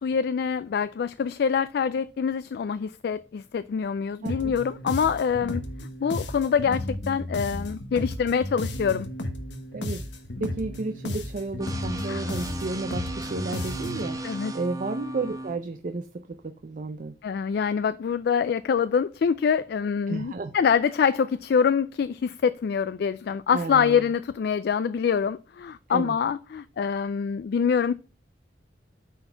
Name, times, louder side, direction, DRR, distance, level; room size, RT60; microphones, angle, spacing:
voice 1, 0.0-5.6 6.0-9.1 12.1-12.2 14.2-14.5 17.2-27.9, left 6 dB, 60° left, 0.3 m, -25 dB
sound 1, 4.2-14.1, left 1 dB, 80° left, 1.2 m, -34 dB
voice 2, 4.2-4.5 9.7-10.0 10.4-14.2 14.5-17.1 20.1-20.5 23.5-24.1 25.9-26.2, right 3 dB, 45° right, 0.5 m, -32 dB
sound 2, 11.6-15.6, right 2 dB, 20° right, 1.0 m, -36 dB
9.0 x 4.1 x 4.5 m
head